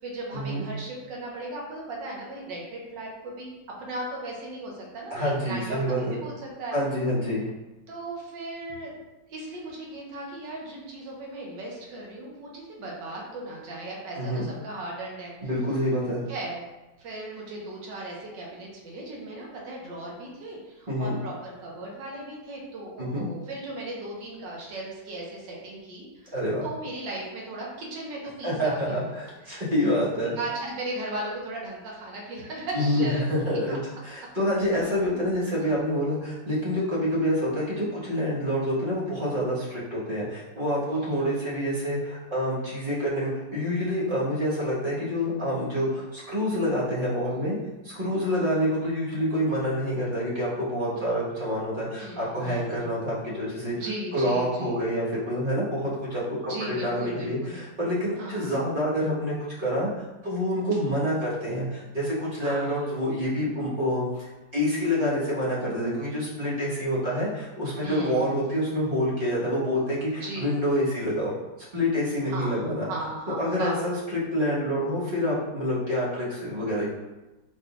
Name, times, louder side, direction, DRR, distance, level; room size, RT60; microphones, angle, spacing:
voice 1, 0.0-3.5 3.8-6.8 7.9-8.9 9.3-15.3 16.3-16.6 17.0-29.0 29.4-29.6 29.8-29.9 30.3-33.8 40.9-41.6 48.2-48.5 50.9-51.3 52.0-53.0 53.8-54.8 56.5-57.6 58.2-58.5 62.4-62.9 67.8-68.6 70.2-70.5 72.3-73.7, right 2 dB, 75° right, -2 dB, 1.6 m, -37 dB
voice 2, 5.1-6.1 6.7-7.5 14.2-14.5 15.4-16.2 20.9-21.1 23.0-23.3 26.3-26.7 28.4-30.3 32.7-47.6 47.8-53.7 54.1-59.9 60.2-71.3 71.7-72.9 73.4-76.9, equal, 30° right, -7 dB, 1.2 m, -27 dB
5.4 x 3.7 x 2.3 m, 1.1 s
omnidirectional pair, 2.0 m